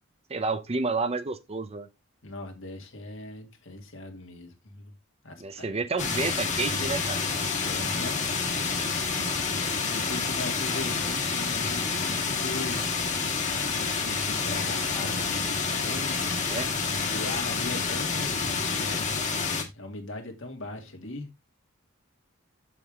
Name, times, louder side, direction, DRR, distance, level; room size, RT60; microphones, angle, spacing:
voice 1, 0.3-1.9 5.4-7.2 16.4-16.7, right 3 dB, 30° right, 0.7 m, -30 dB
voice 2, 2.2-4.9 5.2-5.9 7.5-8.8 9.9-12.9 13.6-16.5 17.1-21.3, left 2 dB, 65° left, 2.3 m, -40 dB
sound 1, 6.0-19.6, left 4 dB, 35° left, 1.9 m, -28 dB
6.9 x 6.9 x 3.6 m
head